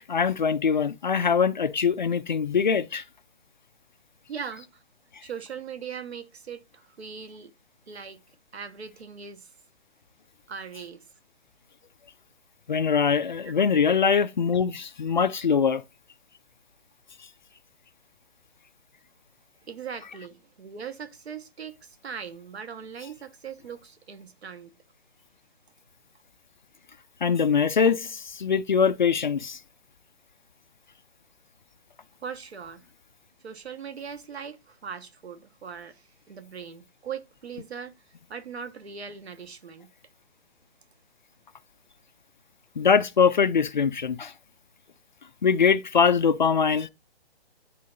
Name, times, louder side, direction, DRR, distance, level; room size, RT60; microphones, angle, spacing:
voice 1, 0.1-3.0 12.7-15.8 27.2-29.6 42.8-44.3 45.4-46.9, left 6 dB, 45° left, 0.4 m, -22 dB
voice 2, 4.3-4.8 5.2-7.5 7.9-8.2 8.5-9.5 10.5-11.0 19.7-24.7 32.2-32.8 33.4-37.9 38.3-39.9, right 7 dB, 75° right, 1.3 m, -40 dB
10.0 x 3.7 x 2.5 m
hypercardioid pair, 170°, 33 cm